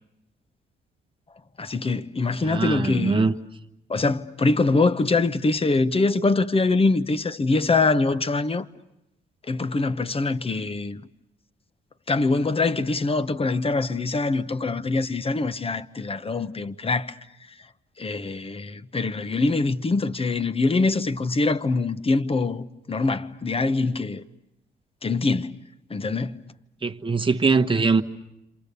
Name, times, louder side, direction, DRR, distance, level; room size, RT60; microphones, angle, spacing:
voice 1, 1.6-3.3 3.9-8.7 9.5-11.0 12.1-17.2 18.0-24.2 25.0-25.6 25.9-26.4, left 3 dB, 30° left, 1.1 m, -24 dB
voice 2, 2.4-3.3 26.8-28.0, right 4 dB, 25° right, 1.3 m, -22 dB
28.5 x 27.0 x 6.9 m
cardioid pair, 85°, 20 cm